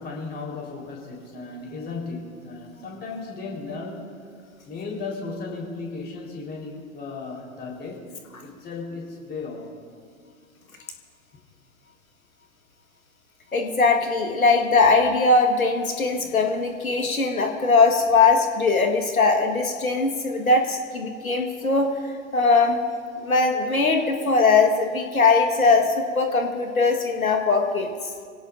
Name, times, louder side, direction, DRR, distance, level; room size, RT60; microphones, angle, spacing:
voice 1, 0.0-4.1 4.7-8.1 8.4-9.7 16.2-16.3, left 3 dB, 25° left, -2 dB, 4.0 m, -35 dB
voice 2, 13.5-21.9 22.3-22.8 23.2-27.9, left 3 dB, 80° left, 3 dB, 1.6 m, -20 dB
24.5 x 17.5 x 2.6 m, 2.1 s
figure-of-eight pair, 100°, 41 cm